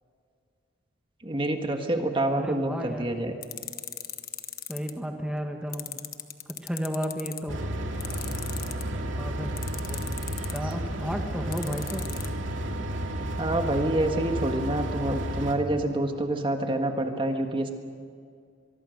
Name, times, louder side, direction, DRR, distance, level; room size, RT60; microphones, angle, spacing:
voice 1, 1.2-3.4 13.4-17.7, right 1 dB, 25° right, 4 dB, 1.6 m, -27 dB
voice 2, 1.9-3.1 4.7-6.0 6.6-7.6 9.2-9.5 9.8-12.2, equal, 5° right, 3 dB, 1.6 m, -33 dB
sound 1, 3.4-4.9 5.7-7.4 8.0-8.8 9.6-10.7 11.5-12.3, left 12 dB, 50° left, 1.3 m, -36 dB
sound 2, 7.5-15.5, right 1 dB, 85° right, 2.4 m, -32 dB
24.5 x 23.0 x 6.5 m, 2.2 s
head